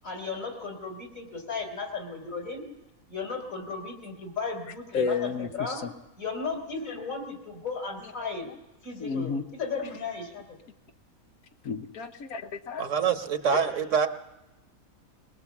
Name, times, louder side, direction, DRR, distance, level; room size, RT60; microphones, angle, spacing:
voice 1, 0.0-2.6 3.1-5.8 6.2-8.5 8.8-10.4 13.5-13.6, left 4 dB, 70° left, 3 dB, 4.3 m, -35 dB
voice 2, 4.9-5.9 9.0-9.4 11.6-12.9, left 5 dB, 85° left, 6 dB, 1.5 m, -32 dB
voice 3, 12.8-14.1, right 7 dB, 60° right, 8 dB, 1.4 m, -25 dB
22.0 x 21.0 x 7.2 m, 1.0 s
omnidirectional pair, 1.5 m